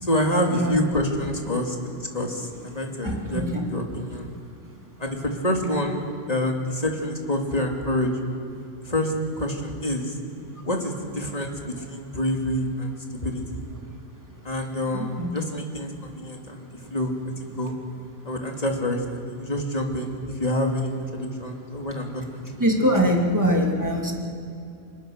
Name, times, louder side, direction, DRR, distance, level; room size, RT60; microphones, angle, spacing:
voice 1, 0.0-1.8 2.1-3.4 3.7-4.3 5.0-6.0 6.3-8.1 8.8-10.2 10.6-12.9 13.2-13.4 14.4-17.1 17.6-17.7 18.2-20.1 20.4-22.6, left 1 dB, 30° left, 1 dB, 2.8 m, -27 dB
voice 2, 3.0-3.6 14.9-15.3 22.6-24.1, equal, 15° right, 0 dB, 2.8 m, -23 dB
27.5 x 21.0 x 6.6 m, 2.7 s
omnidirectional pair, 1.3 m